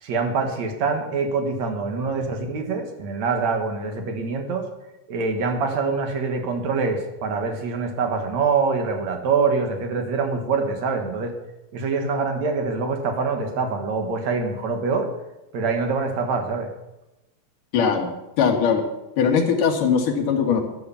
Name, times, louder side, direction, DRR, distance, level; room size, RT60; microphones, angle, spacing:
voice 1, 0.0-4.7 5.1-11.3 11.7-15.1 15.5-16.7, right 4 dB, 65° right, 5 dB, 2.9 m, -25 dB
voice 2, 17.7-18.1 18.4-18.8 19.2-20.6, left 6 dB, 85° left, 3 dB, 3.5 m, -20 dB
13.0 x 11.0 x 7.1 m, 0.96 s
omnidirectional pair, 3.6 m